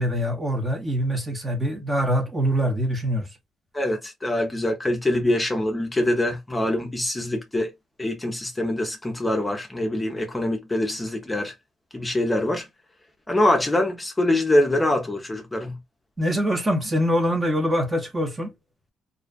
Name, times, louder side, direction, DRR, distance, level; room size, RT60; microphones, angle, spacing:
voice 1, 0.0-3.3 16.2-18.5, equal, 20° right, 0.8 m, -24 dB
voice 2, 3.7-7.7 8.0-11.5 11.9-12.7 13.3-15.8, left 1 dB, 15° left, 0.6 m, -24 dB
2.5 x 2.3 x 2.3 m
cardioid pair, 90°, 0 cm